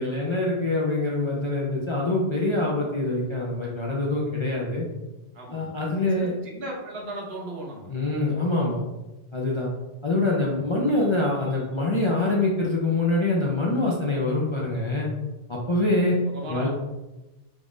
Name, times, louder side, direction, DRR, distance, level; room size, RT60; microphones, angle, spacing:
voice 1, 0.0-4.8 5.5-6.3 7.9-8.8 9.3-9.7 10.0-15.1 15.5-16.2 16.5-16.7, left 2 dB, 45° left, -4 dB, 0.4 m, -25 dB
voice 2, 5.3-5.7 6.1-7.9 16.3-16.7, right 1 dB, 75° right, -2 dB, 1.1 m, -36 dB
3.5 x 2.5 x 3.1 m, 1.0 s
omnidirectional pair, 1.0 m